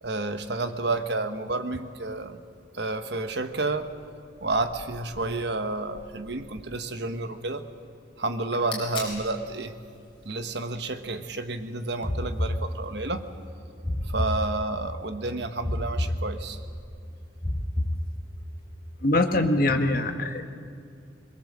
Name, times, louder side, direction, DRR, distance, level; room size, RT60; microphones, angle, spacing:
voice 1, 0.0-2.4 2.7-3.9 4.4-7.7 8.2-9.7 10.2-13.3 14.1-16.6, right 2 dB, 60° right, 8 dB, 1.3 m, -30 dB
sound 1, 8.4-13.5, left 3 dB, 30° left, 5.8 m, -44 dB
sound 2, 12.0-13.2 13.8-15.0 15.6-16.8 17.4-18.6, left 1 dB, 10° left, 1.0 m, -30 dB
voice 2, 19.0-20.4, left 2 dB, 50° left, 6 dB, 1.5 m, -23 dB
22.5 x 22.0 x 7.6 m, 2.4 s
head